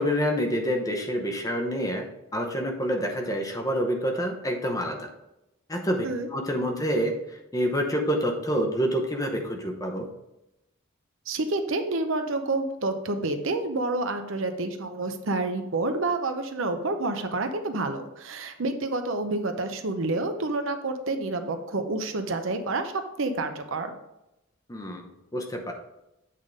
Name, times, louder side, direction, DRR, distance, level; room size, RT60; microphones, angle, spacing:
voice 1, 0.0-2.1 2.3-5.1 5.7-10.1 24.7-25.7, equal, 15° left, 3 dB, 0.8 m, -27 dB
voice 2, 11.3-22.9 23.2-23.9, right 2 dB, 70° right, 7 dB, 0.7 m, -28 dB
8.3 x 3.7 x 5.1 m, 0.91 s
head